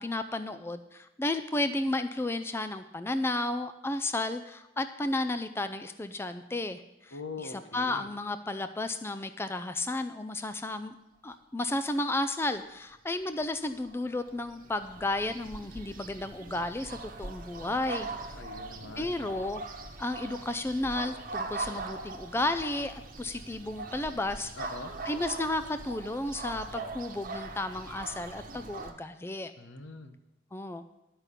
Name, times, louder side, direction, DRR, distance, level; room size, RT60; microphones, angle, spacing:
voice 1, 0.0-10.9 11.2-18.4 19.0-19.6 20.0-24.5 25.0-29.5 30.5-30.8, left 2 dB, 15° left, 10 dB, 0.4 m, -33 dB
voice 2, 7.1-8.1 18.3-19.2 24.6-24.9 29.6-30.2, left 3 dB, 80° left, 8 dB, 1.0 m, -42 dB
sound 1, 13.5-28.9, right 3 dB, 45° right, 1.1 m, -41 dB
11.5 x 5.7 x 8.3 m, 0.93 s
head